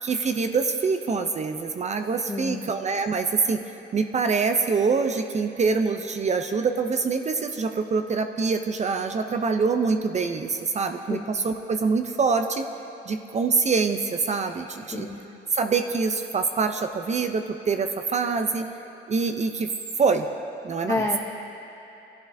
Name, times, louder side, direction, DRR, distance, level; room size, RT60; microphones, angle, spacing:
voice 1, 0.0-3.6 3.9-12.6 13.1-15.1 15.5-18.7 19.1-19.7 20.0-20.3 20.6-21.1, right 4 dB, 35° right, 7 dB, 0.5 m, -25 dB
voice 2, 2.3-2.6 11.1-11.2 14.9-15.2 20.9-21.2, left 2 dB, 15° left, 0 dB, 0.7 m, -28 dB
15.5 x 11.5 x 2.6 m, 2.9 s
cardioid pair, 90°, 20 cm